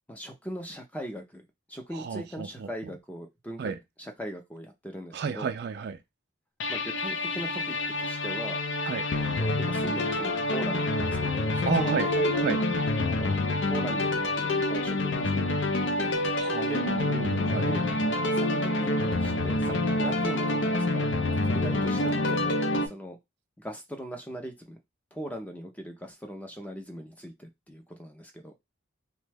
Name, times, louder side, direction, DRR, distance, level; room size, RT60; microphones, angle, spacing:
voice 1, 0.1-1.4 1.7-3.7 4.0-5.5 6.7-8.6 9.4-12.6 13.0-16.9 17.6-17.8 18.3-21.0 21.5-22.4 22.8-23.2 23.6-24.8 25.1-28.5, equal, 5° left, 0.5 m, -40 dB
voice 2, 1.9-2.7 3.6-3.8 5.1-6.0 8.8-9.0 11.7-12.1 12.4-12.6 16.4-17.7, right 5 dB, 55° right, 0.3 m, -31 dB
sound 1, 6.6-22.9, left 2 dB, 60° left, 0.5 m, -27 dB
2.9 x 2.2 x 3.3 m
head